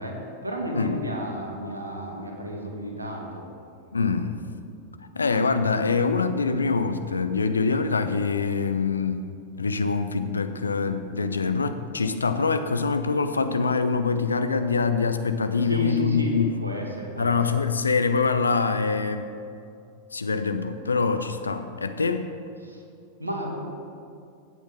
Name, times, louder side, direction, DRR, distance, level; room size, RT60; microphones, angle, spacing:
voice 1, 0.0-3.4 15.6-17.6 22.6-22.8 23.2-23.6, equal, 80° right, 1 dB, 1.7 m, -32 dB
voice 2, 3.9-4.4 5.1-9.3 9.6-16.5 17.2-19.3 20.1-22.3, left 4 dB, 75° left, 9 dB, 0.6 m, -24 dB
15.5 x 8.1 x 3.7 m, 2.5 s
figure-of-eight pair, 90°, 0 cm